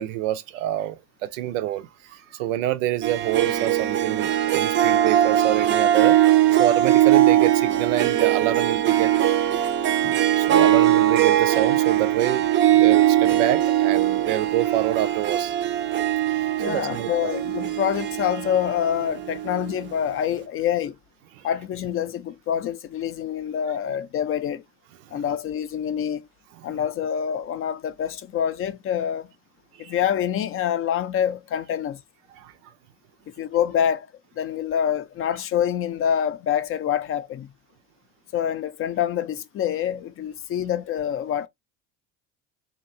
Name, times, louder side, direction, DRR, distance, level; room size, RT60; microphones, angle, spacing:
voice 1, 0.0-9.1 9.4-9.6 10.3-15.5 16.7-17.3 21.3-21.5 25.0-25.2 26.5-26.7 29.8-29.9 32.4-32.7, right 13 dB, 90° right, 0.5 m, -27 dB
Harp, 3.0-19.8, right 12 dB, 35° right, 0.4 m, -20 dB
voice 2, 16.6-21.0 21.4-24.6 25.1-26.2 26.6-29.3 29.8-32.0 33.4-34.1 34.4-37.5 38.3-41.5, left 9 dB, 40° left, 0.4 m, -26 dB
2.7 x 2.2 x 2.5 m
supercardioid pair, 85°, 37 cm